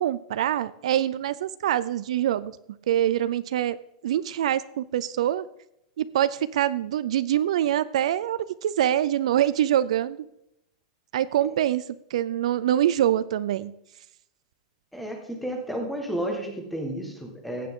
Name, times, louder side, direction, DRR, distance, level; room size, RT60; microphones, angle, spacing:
voice 1, 0.0-2.5 2.9-3.8 4.0-5.5 6.0-10.2 11.1-11.8 12.1-13.7, right 11 dB, 65° right, 16 dB, 0.4 m, -24 dB
voice 2, 14.9-17.7, right 1 dB, ahead, 2 dB, 1.4 m, -32 dB
15.5 x 8.6 x 3.7 m, 0.81 s
supercardioid pair, 180°, 4 cm